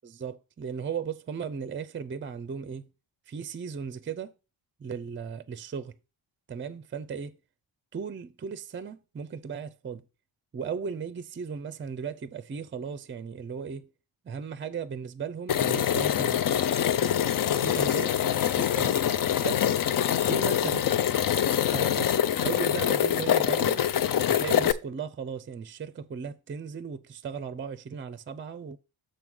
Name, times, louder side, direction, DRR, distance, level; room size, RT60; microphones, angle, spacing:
voice 1, 0.0-2.9 3.3-4.3 4.8-6.0 6.5-7.4 7.9-10.0 10.5-13.9 14.2-16.5 17.6-18.1 18.5-19.0 19.4-19.7 20.3-20.8 21.6-23.8 24.3-28.8, right 6 dB, 30° right, 0.5 m, -36 dB
sound 1, 15.5-24.7, left 10 dB, 50° left, 0.5 m, -25 dB
6.5 x 3.6 x 6.2 m
cardioid pair, 90°, 44 cm